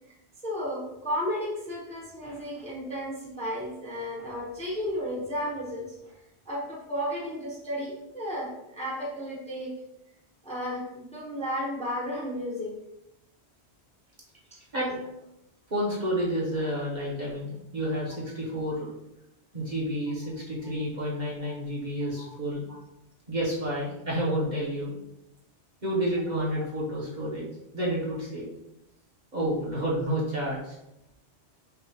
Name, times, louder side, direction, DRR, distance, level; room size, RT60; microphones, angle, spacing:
voice 1, 0.4-6.2 6.5-9.7 10.4-12.7 22.1-22.3 22.7-22.8, equal, 5° left, -5 dB, 0.8 m, -33 dB
voice 2, 15.7-18.9 19.5-22.6 23.3-25.0 25.8-27.5 27.7-28.5 29.3-30.8, equal, 45° right, -6 dB, 1.1 m, -30 dB
5.4 x 2.4 x 2.9 m, 0.86 s
omnidirectional pair, 1.1 m